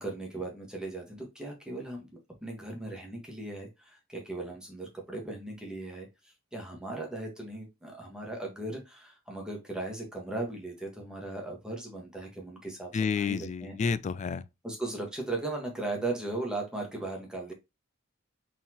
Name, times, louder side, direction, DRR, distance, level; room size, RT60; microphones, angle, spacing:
voice 1, 0.0-2.1 2.4-6.1 6.5-13.7 14.6-17.5, right 2 dB, 5° right, 1.5 m, -37 dB
voice 2, 12.9-14.4, left 5 dB, 35° left, 0.3 m, -30 dB
4.2 x 3.8 x 2.9 m
head